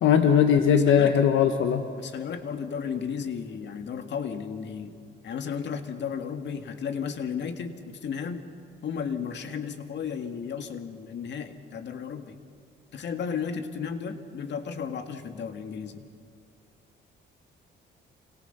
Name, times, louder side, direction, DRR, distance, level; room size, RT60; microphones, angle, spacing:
voice 1, 0.0-1.8, left 8 dB, 80° left, 6 dB, 1.3 m, -20 dB
voice 2, 0.7-1.3 2.0-5.0 5.2-8.4 8.8-12.4 12.9-16.1, left 6 dB, 65° left, 7 dB, 2.0 m, -34 dB
29.0 x 26.0 x 5.6 m, 2.3 s
cardioid pair, 90°, 20 cm